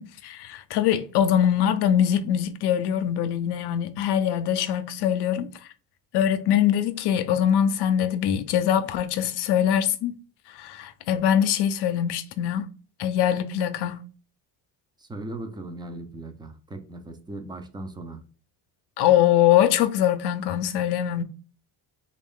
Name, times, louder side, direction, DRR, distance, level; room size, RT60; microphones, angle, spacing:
voice 1, 0.0-5.5 6.1-10.1 10.5-12.7 13.0-14.0 19.0-21.2, left 10 dB, 70° left, 0.6 m, -23 dB
voice 2, 15.0-18.2, right 2 dB, 10° right, 0.4 m, -38 dB
3.0 x 2.5 x 3.6 m
cardioid pair, 115°, 43 cm